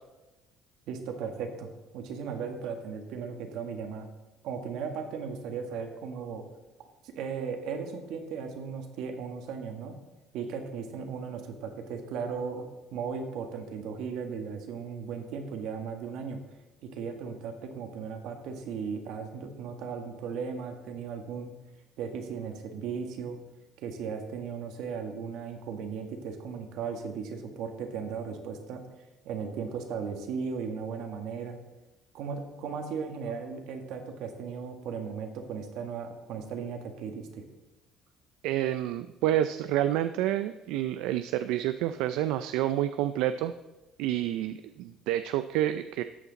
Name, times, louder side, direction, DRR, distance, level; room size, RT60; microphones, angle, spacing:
voice 1, 0.9-4.1 4.4-6.4 6.8-9.9 10.3-12.6 12.9-16.4 16.8-21.5 22.0-23.4 23.8-28.8 29.2-31.6 32.1-37.4, right 6 dB, 70° right, 5 dB, 1.6 m, -36 dB
voice 2, 38.4-43.5 44.0-46.0, right 12 dB, 90° right, 11 dB, 0.4 m, -28 dB
13.0 x 8.4 x 4.0 m, 1.1 s
cardioid pair, 150°, 0 cm